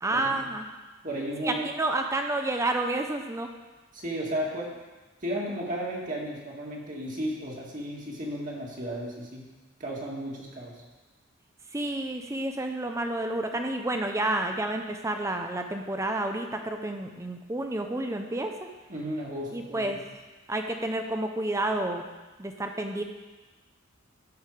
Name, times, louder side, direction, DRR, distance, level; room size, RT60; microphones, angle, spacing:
voice 1, 0.0-0.7 1.4-3.5 11.7-18.7 19.5-20.0 20.5-22.1 22.4-23.0, right 2 dB, 15° right, 4 dB, 0.5 m, -30 dB
voice 2, 1.0-1.7 3.9-4.8 5.2-9.5 9.8-10.7 18.9-20.0, equal, 40° right, -3 dB, 1.9 m, -34 dB
12.5 x 5.5 x 4.9 m, 1.2 s
head